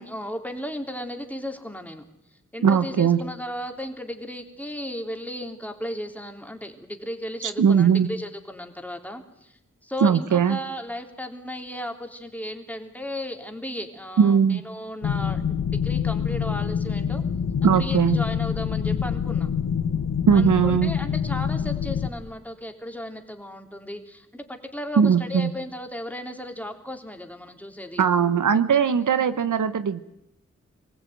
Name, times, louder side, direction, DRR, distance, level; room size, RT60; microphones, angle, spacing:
voice 1, 0.0-2.0 2.5-9.5 9.8-17.2 17.6-19.5 20.3-28.1 29.2-29.4, equal, 5° left, 4 dB, 3.4 m, -35 dB
voice 2, 2.6-3.2 7.4-8.1 10.0-10.6 14.2-14.6 17.6-18.2 20.3-20.9 25.0-25.5 28.0-30.0, right 7 dB, 85° right, 12 dB, 1.0 m, -19 dB
sound 1, 15.0-22.1, left 7 dB, 90° left, 1.3 m, -26 dB
24.5 x 15.5 x 9.4 m, 0.83 s
cardioid pair, 45°, 30 cm